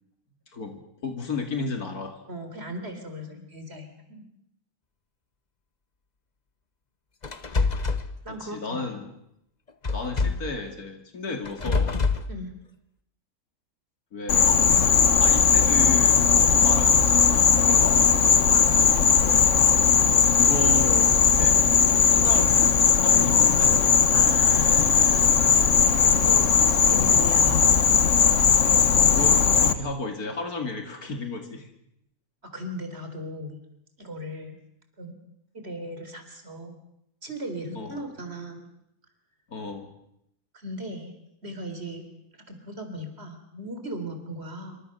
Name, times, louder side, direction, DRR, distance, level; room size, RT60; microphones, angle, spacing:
voice 1, 0.5-2.2 8.3-9.1 9.9-12.0 14.1-14.5 15.2-18.1 20.3-21.7 22.1-23.9 29.0-31.7 37.7-38.0 39.5-39.9, left 3 dB, 85° left, 4 dB, 2.9 m, -33 dB
voice 2, 2.3-4.2 8.2-8.9 10.2-10.3 12.3-12.5 18.5-19.0 24.1-25.3 25.9-27.6 32.5-33.6 34.0-34.6 35.0-35.2 35.5-36.8 37.2-38.6 40.5-41.1 41.4-42.0 42.5-44.8, equal, 45° right, 6 dB, 4.3 m, -37 dB
sound 1, 7.2-8.1 9.8-10.5 11.4-12.3, left 4 dB, 30° left, 1.2 m, -25 dB
Insect, 14.3-29.7, left 6 dB, 55° left, 1.5 m, -19 dB
26.5 x 25.0 x 6.8 m, 0.81 s
omnidirectional pair, 1.5 m